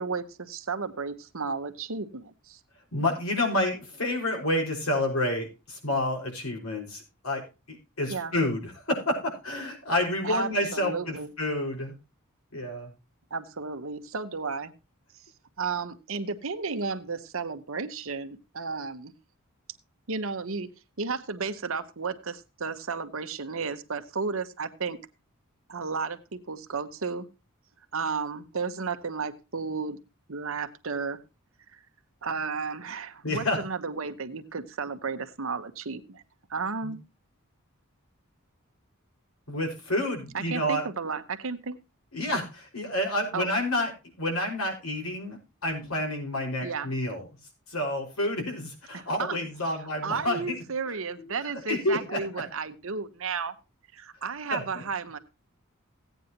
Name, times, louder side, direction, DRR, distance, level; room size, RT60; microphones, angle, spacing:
voice 1, 0.0-2.6 8.1-8.3 10.2-11.3 13.3-14.7 15.6-19.1 20.1-20.7 21.0-25.0 25.7-27.3 27.9-30.0 30.3-31.2 31.7-31.8 32.2-36.2 36.5-37.0 40.3-41.8 43.3-43.5 46.6-46.9 48.9-49.4 49.8-53.5 53.9-55.2, right 5 dB, 70° right, 9 dB, 1.1 m, -33 dB
voice 2, 2.9-11.9 12.5-12.9 33.2-33.6 36.8-36.9 39.5-40.8 42.1-43.9 44.2-47.2 47.7-50.5 51.2-51.3 51.7-52.2 54.5-54.8, left 1 dB, 85° left, 2 dB, 5.3 m, -29 dB
16.5 x 9.2 x 2.9 m, 0.29 s
head